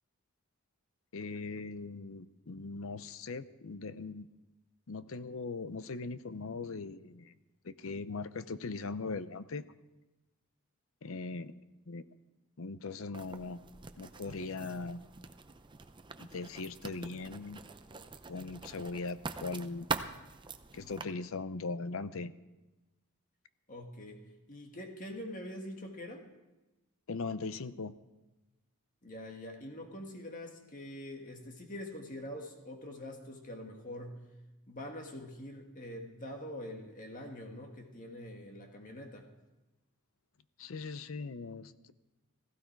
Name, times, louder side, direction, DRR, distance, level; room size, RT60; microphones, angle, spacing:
voice 1, 1.1-4.3 4.9-7.3 7.6-9.7 11.0-11.5 11.9-12.0 12.6-13.6 14.0-15.0 16.2-17.6 18.3-19.9 20.7-22.3 27.1-27.9 40.6-41.9, left 3 dB, 70° left, 14 dB, 0.6 m, -40 dB
Writing, 13.1-21.0, right 4 dB, 20° right, 0.6 m, -43 dB
voice 2, 23.7-24.2 24.5-26.3 29.0-34.2 34.7-39.3, left 1 dB, 40° left, 2 dB, 1.9 m, -44 dB
16.0 x 15.5 x 4.6 m, 1.1 s
head